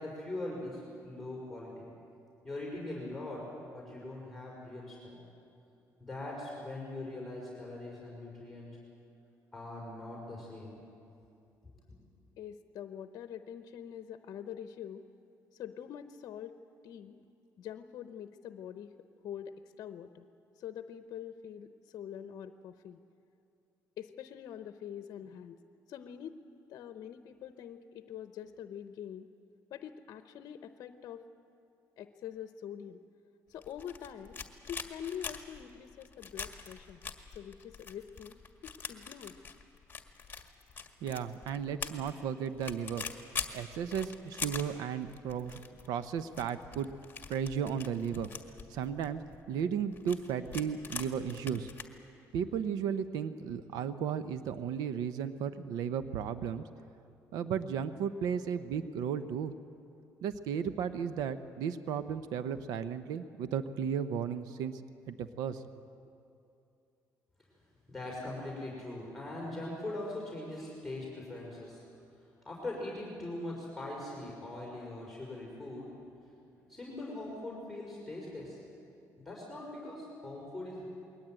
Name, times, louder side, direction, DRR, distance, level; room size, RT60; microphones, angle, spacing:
voice 1, 0.0-1.9 2.4-5.2 6.0-8.8 9.5-10.8 67.9-71.8 72.5-75.9 76.7-78.6 79.2-80.9, left 2 dB, 5° left, -4 dB, 5.6 m, -41 dB
voice 2, 12.4-15.0 15.5-16.6 16.8-17.2 17.6-18.9 19.2-20.3 20.5-23.0 24.0-25.6 25.9-26.4 26.7-29.3 29.7-31.3 32.0-33.0 33.5-34.4 34.7-37.0 37.3-38.4 38.6-39.4, left 9 dB, 65° left, 9 dB, 0.8 m, -45 dB
sound 1, 33.6-51.8, left 5 dB, 30° left, 1.9 m, -43 dB
voice 3, 41.0-43.1 43.5-45.6 45.9-46.9 47.3-48.3 48.7-49.2 49.5-51.7 52.3-56.6 57.3-59.5 60.2-64.8 65.1-65.6, right 8 dB, 85° right, 12 dB, 0.8 m, -34 dB
22.0 x 18.5 x 9.0 m, 2.6 s
cardioid pair, 100°, 6 cm